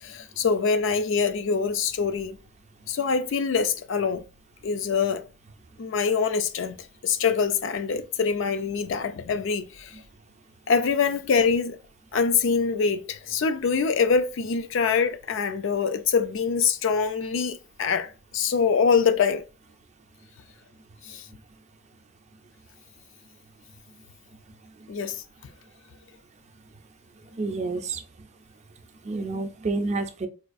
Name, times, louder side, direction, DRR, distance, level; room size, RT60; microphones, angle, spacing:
voice 1, 0.0-2.4 2.9-4.2 4.6-5.2 5.8-6.8 7.0-10.0 10.7-11.8 12.1-19.4 21.0-21.2 24.9-25.2, left 5 dB, 65° left, 0.4 m, -24 dB
voice 2, 27.3-28.0 29.0-30.3, right 3 dB, 35° right, 0.4 m, -29 dB
4.1 x 2.4 x 2.5 m
head